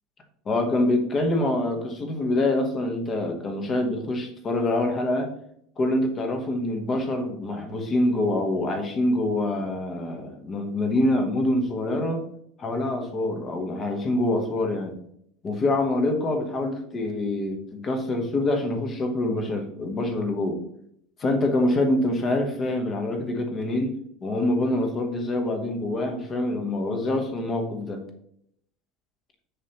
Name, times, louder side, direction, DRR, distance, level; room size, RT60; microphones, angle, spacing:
voice 1, 0.4-5.3 5.8-12.2 12.6-15.0 15.4-20.6 21.2-28.0, left 1 dB, 25° left, 5 dB, 1.0 m, -25 dB
6.8 x 5.5 x 2.9 m, 0.71 s
supercardioid pair, 155°, 0 cm